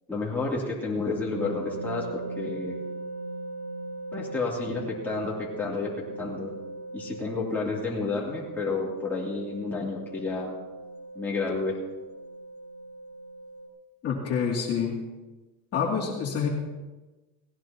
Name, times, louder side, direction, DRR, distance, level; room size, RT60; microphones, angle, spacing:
voice 1, 0.1-2.8 4.1-6.5 6.9-10.5 11.1-11.8, left 3 dB, 5° left, -6 dB, 3.0 m, -31 dB
sound 1, 1.3-13.7, right 2 dB, 65° right, 2.4 m, -39 dB
voice 2, 14.0-15.0 15.7-16.5, left 6 dB, 35° left, -2 dB, 2.8 m, -27 dB
18.5 x 16.0 x 3.0 m, 1.2 s
cardioid pair, 140°, 41 cm